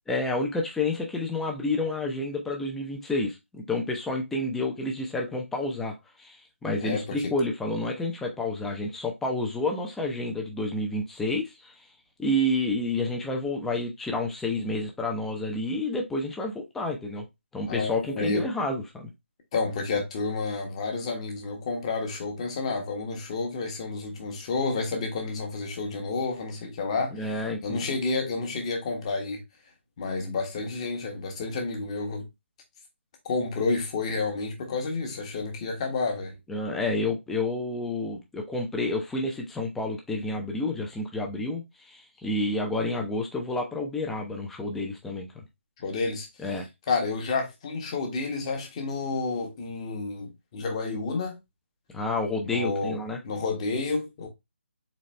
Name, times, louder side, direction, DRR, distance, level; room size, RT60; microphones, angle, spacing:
voice 1, 0.1-11.7 12.2-17.3 17.5-19.1 27.1-27.8 36.5-45.3 46.4-46.7 51.9-53.2, left 2 dB, 5° left, 0.6 m, -29 dB
voice 2, 6.8-7.3 17.7-18.5 19.5-29.4 30.0-32.3 33.2-36.3 45.8-46.3 46.9-51.3 52.4-53.0 53.2-54.3, left 3 dB, 25° left, 1.1 m, -30 dB
4.1 x 3.2 x 3.1 m
figure-of-eight pair, 160°, 7 cm